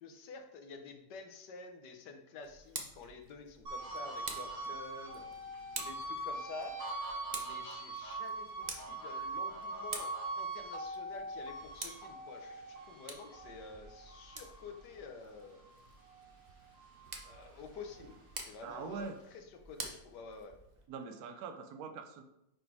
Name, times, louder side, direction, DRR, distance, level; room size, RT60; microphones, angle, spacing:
voice 1, 0.0-5.2 5.7-6.8 7.3-15.6 17.2-20.6, left 4 dB, 70° left, 5 dB, 1.4 m, -49 dB
Tick, 2.4-20.9, right 3 dB, 90° right, 0.3 m, -49 dB
sound 1, 3.7-16.3 16.7-18.4, right 2 dB, 35° right, 2.1 m, -43 dB
voice 2, 18.6-19.2 20.9-22.2, right 5 dB, 65° right, 7 dB, 1.1 m, -43 dB
5.2 x 4.8 x 4.6 m, 0.83 s
omnidirectional pair, 2.0 m